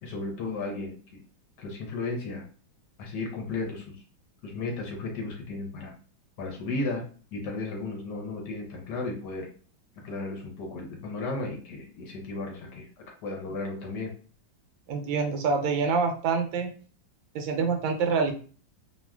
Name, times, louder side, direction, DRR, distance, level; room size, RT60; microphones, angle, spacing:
voice 1, 0.0-1.2 1.6-2.4 3.0-4.0 4.4-5.9 6.4-7.0 7.3-9.5 10.0-14.1, left 3 dB, 70° left, 1 dB, 1.1 m, -34 dB
voice 2, 14.9-16.7 17.3-18.3, right 5 dB, 80° right, 5 dB, 1.3 m, -26 dB
3.1 x 2.3 x 2.2 m, 0.40 s
omnidirectional pair, 2.1 m